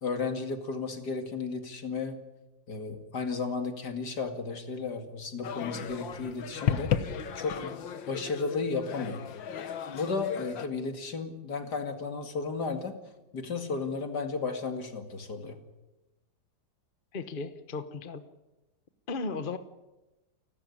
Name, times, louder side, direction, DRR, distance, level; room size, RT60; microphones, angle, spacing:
voice 1, 0.0-2.2 2.7-9.2 9.9-13.0 13.3-15.6, left 4 dB, 60° left, 6 dB, 2.8 m, -34 dB
sound 1, 5.4-10.7, left 8 dB, 85° left, 2.0 m, -34 dB
voice 2, 17.1-18.2 19.1-19.6, left 4 dB, 35° left, 11 dB, 1.0 m, -35 dB
29.5 x 12.5 x 9.9 m, 1.0 s
omnidirectional pair, 2.0 m